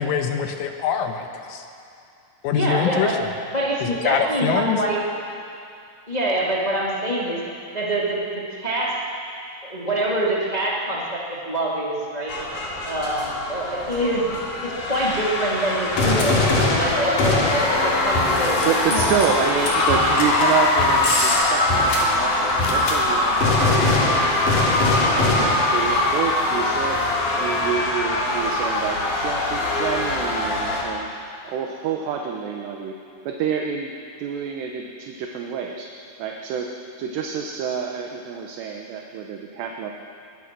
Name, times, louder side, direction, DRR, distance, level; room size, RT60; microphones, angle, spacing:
voice 1, 0.0-1.7 2.4-3.1 3.8-4.8, left 7 dB, 80° left, 5 dB, 3.9 m, -24 dB
voice 2, 2.5-3.2 3.5-5.0 6.1-7.4 7.7-9.0 9.6-12.3 12.8-14.3 14.6-17.4 17.8-18.6 18.9-19.0, right 1 dB, 25° left, -4 dB, 0.9 m, -25 dB
sound 1, 12.3-30.8, left 2 dB, 45° left, 4.0 m, -21 dB
voice 3, 18.6-24.9 25.1-31.1 31.4-33.0 33.3-35.9 36.2-39.9, right 7 dB, 70° right, 2 dB, 2.8 m, -28 dB
22.0 x 20.5 x 6.2 m, 2.5 s
omnidirectional pair, 5.8 m